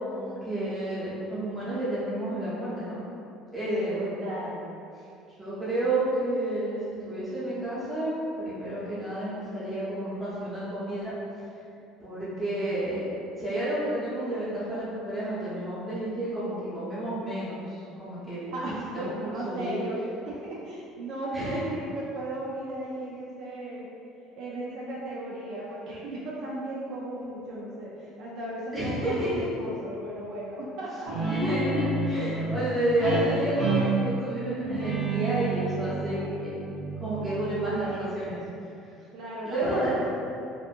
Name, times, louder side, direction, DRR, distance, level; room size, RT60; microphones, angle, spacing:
voice 1, 0.0-3.0 3.5-4.2 5.4-6.8 7.0-11.1 12.0-13.0 13.4-18.5 18.9-19.8 21.3-21.7 28.7-29.5 31.3-36.5 37.0-38.4 39.4-40.1, right 1 dB, 10° right, -11 dB, 0.9 m, -30 dB
voice 2, 3.9-4.6 12.2-12.7 18.5-20.0 20.3-23.9 24.4-31.6 39.1-40.1, right 1 dB, 55° right, -5 dB, 0.4 m, -36 dB
Guitar, 31.1-38.2, right 3 dB, 40° right, 0.8 m, -30 dB
2.7 x 2.4 x 2.5 m, 2.6 s
cardioid pair, 160°, 0 cm